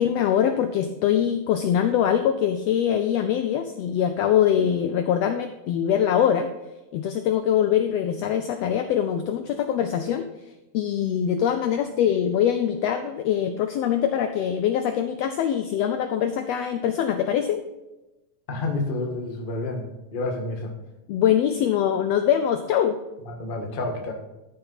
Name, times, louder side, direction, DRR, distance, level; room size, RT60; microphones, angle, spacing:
voice 1, 0.0-6.5 6.9-10.2 10.7-17.6 21.1-23.0, left 9 dB, 85° left, 8 dB, 1.5 m, -23 dB
voice 2, 18.5-19.8 20.1-20.7 23.2-24.1, left 2 dB, 35° left, 1 dB, 0.9 m, -29 dB
13.0 x 7.0 x 4.1 m, 1.0 s
omnidirectional pair, 3.6 m